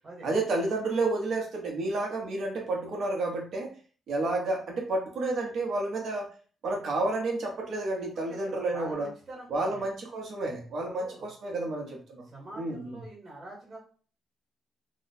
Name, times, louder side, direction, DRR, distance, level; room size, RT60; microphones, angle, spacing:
voice 1, 0.2-3.7 4.1-6.3 6.6-9.1 9.5-12.2 12.6-12.9, right 2 dB, 55° right, 0 dB, 1.0 m, -30 dB
voice 2, 8.0-9.8 10.9-11.3 12.2-13.8, right 1 dB, 35° right, -4 dB, 1.4 m, -45 dB
3.1 x 2.1 x 4.1 m, 0.41 s
cardioid pair, 165°, 0 cm